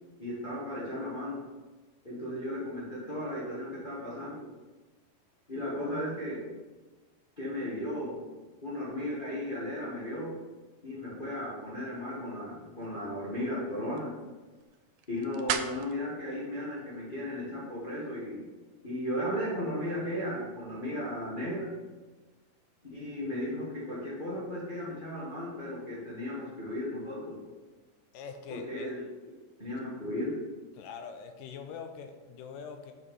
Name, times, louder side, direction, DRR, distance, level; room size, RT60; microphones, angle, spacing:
voice 1, 0.2-1.4 2.0-4.5 5.5-6.5 7.4-8.3 8.6-10.3 10.8-14.1 15.1-18.4 18.8-21.7 22.9-27.4 28.5-29.0 29.6-30.3, left 1 dB, 25° left, -8 dB, 1.2 m, -35 dB
sound 1, 12.5-17.7, right 9 dB, 90° right, 1.7 m, -41 dB
voice 2, 28.1-28.9 30.7-32.9, left 6 dB, 75° left, 6 dB, 2.2 m, -43 dB
6.7 x 6.2 x 5.4 m, 1.3 s
omnidirectional pair, 4.1 m